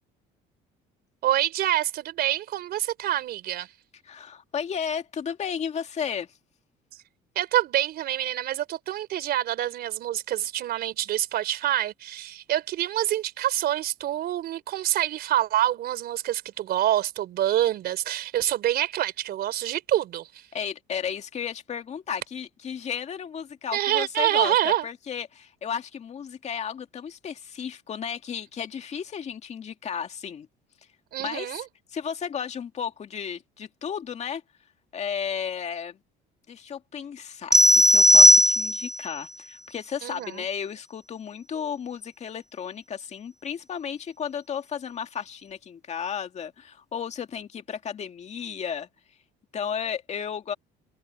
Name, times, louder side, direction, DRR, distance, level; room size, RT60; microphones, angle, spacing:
voice 1, 1.2-3.7 7.4-20.4 23.7-24.9 31.1-31.6 40.0-40.5, right 12 dB, 60° right, 4.0 m, -26 dB
voice 2, 4.1-6.3 20.5-30.5 31.2-31.6 31.9-34.4 34.9-36.0 36.5-48.9 49.5-50.5, left 7 dB, 40° left, 2.2 m, -33 dB
sound 1, 37.5-39.0, equal, 5° right, 0.5 m, -16 dB
cardioid pair, 120°, 18 cm